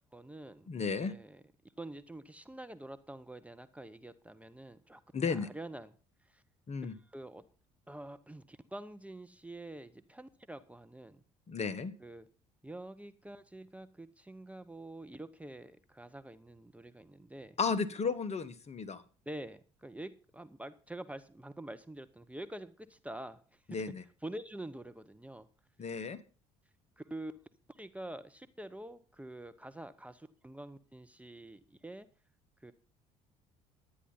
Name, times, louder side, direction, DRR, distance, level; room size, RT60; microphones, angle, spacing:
voice 1, 0.1-1.4 1.8-5.0 5.3-5.9 6.3-6.4 6.8-7.4 7.9-11.2 12.0-12.3 12.6-17.6 19.3-23.6 24.2-25.5 27.0-27.3 27.7-32.1 32.6-32.7, right 1 dB, 10° right, 10 dB, 0.9 m, -46 dB
voice 2, 0.7-1.1 5.1-5.5 6.7-6.9 11.5-11.9 17.6-19.0 23.7-24.0 25.8-26.2, left 5 dB, 40° left, 13 dB, 1.4 m, -34 dB
11.0 x 10.0 x 5.5 m, 0.38 s
hypercardioid pair, 60°, 18 cm